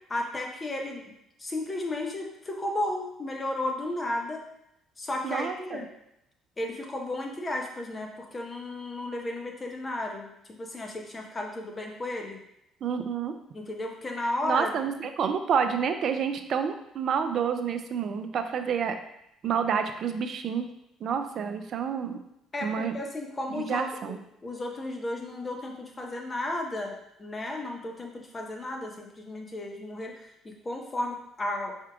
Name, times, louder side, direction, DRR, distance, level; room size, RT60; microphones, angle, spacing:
voice 1, 0.1-1.1 1.4-4.5 5.0-5.9 6.6-10.3 10.6-12.4 13.5-14.9 22.5-31.7, left 1 dB, 30° left, 1 dB, 0.9 m, -34 dB
voice 2, 5.2-5.8 12.8-13.3 14.4-19.0 19.4-20.7 21.0-22.2 22.6-22.9 23.5-24.2, right 7 dB, 55° right, 8 dB, 0.4 m, -29 dB
4.4 x 3.6 x 2.3 m, 0.80 s
hypercardioid pair, 55°, 0 cm